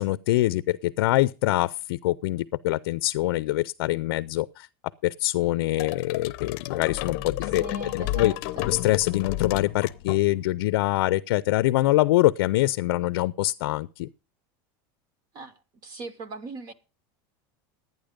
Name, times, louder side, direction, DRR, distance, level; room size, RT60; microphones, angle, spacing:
voice 1, 0.0-4.7 5.0-7.6 7.9-8.3 8.7-14.1, left 17 dB, 85° left, 0.5 m, -24 dB
sound 1, 5.8-10.6, left 16 dB, 50° left, 0.7 m, -32 dB
voice 2, 7.4-8.7 15.3-16.7, right 4 dB, 30° right, 0.9 m, -40 dB
12.0 x 9.4 x 5.1 m
supercardioid pair, 175°, 12 cm